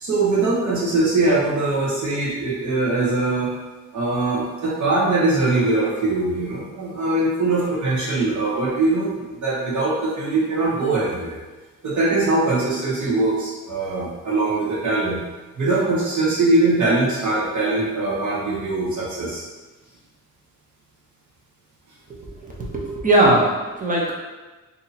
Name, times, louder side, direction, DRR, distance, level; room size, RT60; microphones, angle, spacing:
voice 1, 0.0-3.5 3.9-11.4 11.8-15.2 15.6-19.4, right 2 dB, 60° right, -5 dB, 1.0 m, -22 dB
voice 2, 22.2-24.1, right 1 dB, 25° right, -3 dB, 0.6 m, -20 dB
2.8 x 2.7 x 4.0 m, 1.2 s
wide cardioid pair, 170°, 33 cm